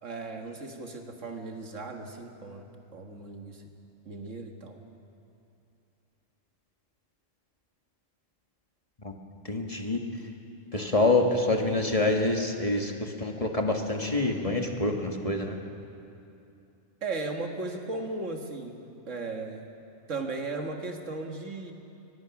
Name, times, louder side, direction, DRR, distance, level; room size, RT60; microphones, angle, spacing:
voice 1, 0.0-3.6 4.1-4.8 17.0-18.8 19.1-19.7 20.1-21.7, right 3 dB, 75° right, 3 dB, 2.0 m, -36 dB
voice 2, 9.5-10.0 10.7-15.6, left 2 dB, 30° left, 2 dB, 1.6 m, -26 dB
24.0 x 20.0 x 6.0 m, 2.6 s
omnidirectional pair, 1.3 m